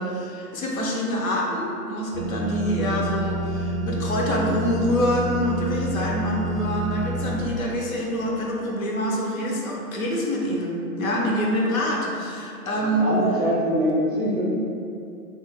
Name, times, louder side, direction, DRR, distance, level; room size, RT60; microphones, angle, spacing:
voice 1, 0.0-13.1, equal, 60° left, -2 dB, 0.8 m, -26 dB
sound 1, 2.1-7.4, right 1 dB, 25° left, 0.4 m, -28 dB
voice 2, 12.8-14.4, equal, 35° right, -5 dB, 0.5 m, -23 dB
3.2 x 2.1 x 3.6 m, 2.6 s
hypercardioid pair, 140°, 47 cm